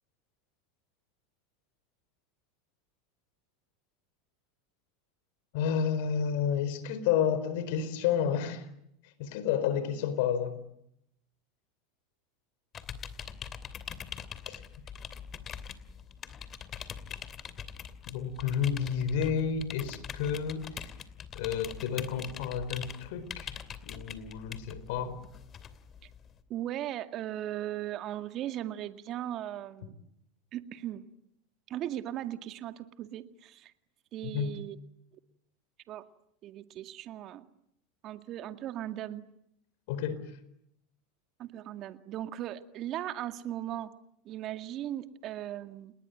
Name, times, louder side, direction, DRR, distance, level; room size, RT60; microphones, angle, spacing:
voice 1, 5.5-8.6 9.2-10.6 14.5-14.6 18.1-20.9 21.3-25.2 34.2-34.5 39.9-40.2, left 8 dB, 65° left, 4.3 m, -31 dB
sound 1, 12.7-26.4, left 7 dB, 35° left, 2.7 m, -43 dB
voice 2, 26.5-29.9 30.5-31.1 31.7-33.7 34.1-34.8 35.9-36.0 36.4-37.5 38.0-39.2 41.4-43.9 44.3-45.9, right 12 dB, 45° right, 2.0 m, -38 dB
30.0 x 20.5 x 9.4 m
hypercardioid pair, 90°, 0 cm